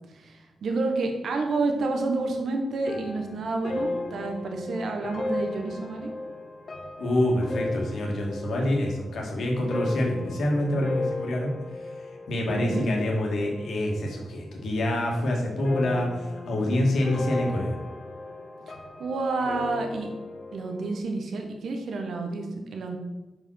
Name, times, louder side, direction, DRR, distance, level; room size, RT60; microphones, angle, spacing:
voice 1, 0.1-6.1 12.5-12.9 19.0-20.1 20.5-22.5 22.7-23.0, right 3 dB, 75° right, 3 dB, 1.2 m, -29 dB
sound 1, 2.9-14.3 14.6-15.2 15.6-21.0, left 2 dB, 55° left, 0.9 m, -36 dB
voice 2, 7.0-11.5 12.3-16.1 16.5-17.8, left 1 dB, 75° left, -1 dB, 1.8 m, -26 dB
5.6 x 4.9 x 5.6 m, 1.1 s
cardioid pair, 60°, 0 cm